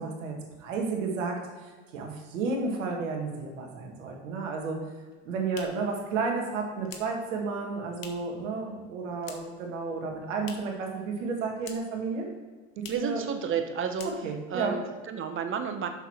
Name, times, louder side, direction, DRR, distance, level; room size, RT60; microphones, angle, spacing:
voice 1, 0.0-4.8 5.3-12.3 12.8-13.3 14.0-14.8, right 4 dB, 75° right, 1 dB, 1.9 m, -32 dB
sound 1, 5.1-8.4 8.7-9.7 9.9-10.9 11.1-12.1 12.3-12.4 12.7-13.2 13.5-13.7 13.9-14.6, left 6 dB, 90° left, 1.1 m, -47 dB
voice 2, 12.9-14.1 14.5-15.9, right 7 dB, 30° right, 7 dB, 1.0 m, -31 dB
6.9 x 6.2 x 4.5 m, 1.4 s
hypercardioid pair, 95°, 38 cm